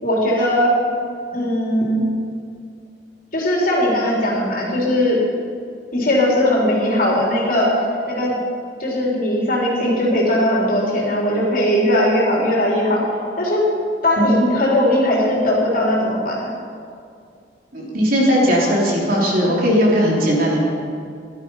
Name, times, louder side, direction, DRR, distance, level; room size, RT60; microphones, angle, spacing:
voice 1, 0.0-0.7 1.3-2.1 3.3-5.2 5.9-7.7 8.1-8.3 8.8-13.0 13.4-13.6 14.0-16.5, left 1 dB, 50° left, -4 dB, 3.8 m, -19 dB
voice 2, 14.2-14.5 17.7-20.6, equal, 50° right, -4 dB, 3.4 m, -17 dB
16.0 x 12.0 x 5.6 m, 2.3 s
head